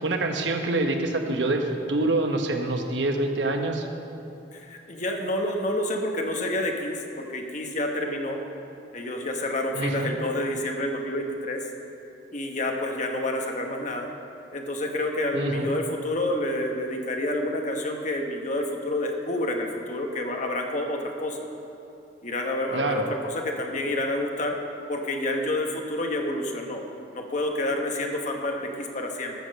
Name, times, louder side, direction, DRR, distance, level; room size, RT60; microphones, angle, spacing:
voice 1, 0.0-3.9 9.7-10.1 15.3-15.7 22.7-23.0, right 2 dB, 85° right, 4 dB, 1.1 m, -26 dB
voice 2, 4.5-8.4 8.9-11.6 12.3-14.1 14.5-21.4 22.2-24.6 24.9-26.8 27.1-29.3, left 1 dB, 45° left, 2 dB, 1.2 m, -29 dB
13.5 x 6.3 x 6.5 m, 2.8 s
head